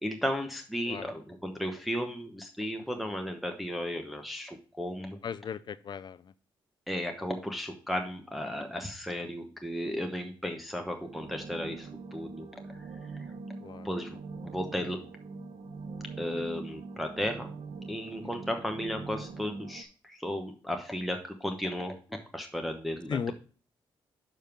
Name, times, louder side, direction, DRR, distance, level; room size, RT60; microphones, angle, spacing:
voice 1, 0.0-5.2 6.9-12.8 13.8-14.1 14.4-15.0 16.2-17.5 17.9-23.3, equal, ahead, 3 dB, 1.0 m, -35 dB
voice 2, 5.2-6.2 13.6-13.9 18.2-18.3 23.1-23.3, left 7 dB, 50° left, 16 dB, 0.5 m, -36 dB
sound 1, 11.0-19.8, right 4 dB, 65° right, 1.0 m, -43 dB
6.4 x 5.3 x 5.8 m, 0.39 s
cardioid pair, 90°, 9 cm